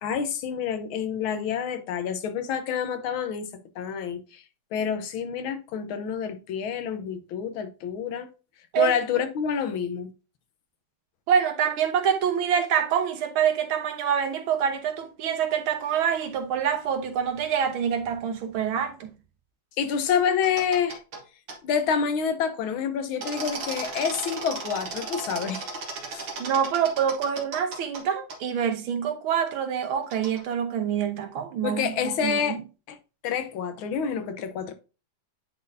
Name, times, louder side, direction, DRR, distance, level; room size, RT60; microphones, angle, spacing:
voice 1, 0.0-3.5 3.8-4.4 4.7-8.3 8.8-10.1 19.8-21.0 21.6-25.7 26.1-26.3 31.6-32.6 32.9-33.0 33.2-34.7, left 7 dB, 85° left, 1.7 m, -28 dB
voice 2, 11.3-19.1 26.4-32.6, right 8 dB, 90° right, 1.9 m, -26 dB
sound 1, 20.4-21.2 21.5-21.6 23.2-28.0 28.3-28.4 30.1-30.4, right 3 dB, 70° right, 2.1 m, -35 dB
9.9 x 3.9 x 2.6 m
omnidirectional pair, 2.2 m